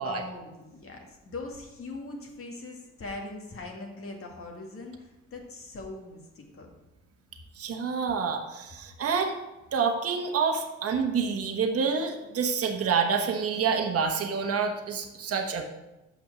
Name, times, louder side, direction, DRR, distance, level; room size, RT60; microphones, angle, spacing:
voice 1, 0.0-6.7, left 3 dB, 45° left, 1 dB, 2.0 m, -41 dB
voice 2, 7.6-9.3 9.7-15.6, right 5 dB, 50° right, 3 dB, 1.1 m, -27 dB
7.3 x 5.9 x 6.1 m, 1.0 s
cardioid pair, 90°, 30 cm